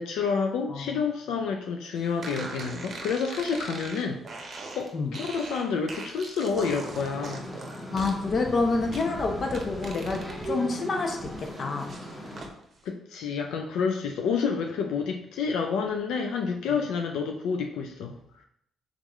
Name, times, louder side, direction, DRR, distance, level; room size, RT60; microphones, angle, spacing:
voice 1, 0.0-7.5 12.8-18.2, left 5 dB, 85° left, 3 dB, 0.4 m, -29 dB
voice 2, 0.7-1.0 2.4-2.5 4.9-5.1 7.9-10.2 10.5-11.9, left 3 dB, 45° left, 3 dB, 0.8 m, -28 dB
sound 1, 2.2-10.5 10.9-12.5, right 3 dB, 45° right, 0.8 m, -41 dB
sound 2, 6.8-12.5, equal, 10° left, 1.2 m, -39 dB
3.6 x 3.5 x 3.0 m, 0.73 s
cardioid pair, 90°, 0 cm